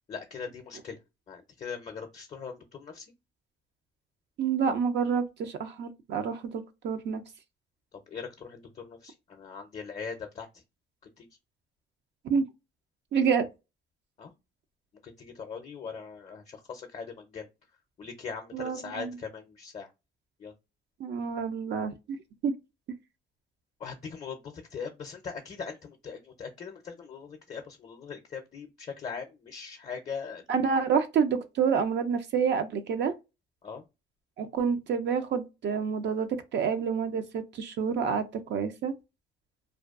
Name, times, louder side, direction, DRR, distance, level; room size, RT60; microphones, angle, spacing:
voice 1, 0.1-1.0 1.3-3.1 8.1-10.6 11.0-11.3 14.2-14.3 15.0-17.5 18.0-19.9 20.4-20.5 23.8-30.4 33.6-33.8, left 5 dB, 35° left, 0.5 m, -40 dB
voice 2, 4.4-7.2 12.3-12.4 13.1-13.5 18.5-19.1 21.0-21.9 22.4-22.5 30.5-33.1 34.4-38.2 38.5-38.9, right 6 dB, 60° right, 0.4 m, -28 dB
2.4 x 2.2 x 2.3 m
cardioid pair, 90°, 20 cm